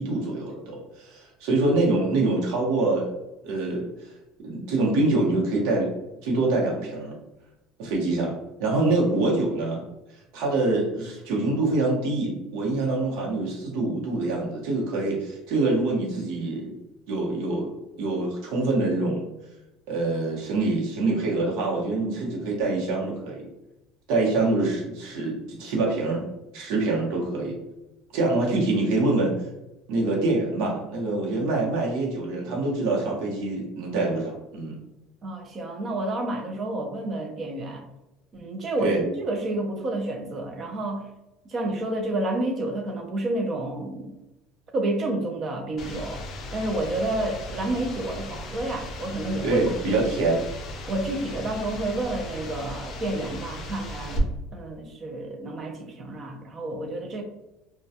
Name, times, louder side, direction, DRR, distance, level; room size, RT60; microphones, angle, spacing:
voice 1, 0.0-3.1 3.4-4.1 4.4-5.9 6.2-7.1 7.8-8.3 8.6-9.8 10.3-16.7 17.1-17.7 18.0-19.2 19.9-23.5 24.1-26.3 26.5-27.6 28.1-29.3 29.9-34.8 38.8-39.0 49.4-50.4, right 2 dB, 70° right, -2 dB, 0.9 m, -25 dB
voice 2, 35.2-37.8 38.3-41.1 41.5-44.1 44.7-46.3 46.5-49.7 50.9-57.2, right 2 dB, 30° right, 2 dB, 0.5 m, -30 dB
sound 1, 45.8-54.2, left 1 dB, 40° left, 0.4 m, -37 dB
2.2 x 2.2 x 2.7 m, 0.95 s
cardioid pair, 160°, 0 cm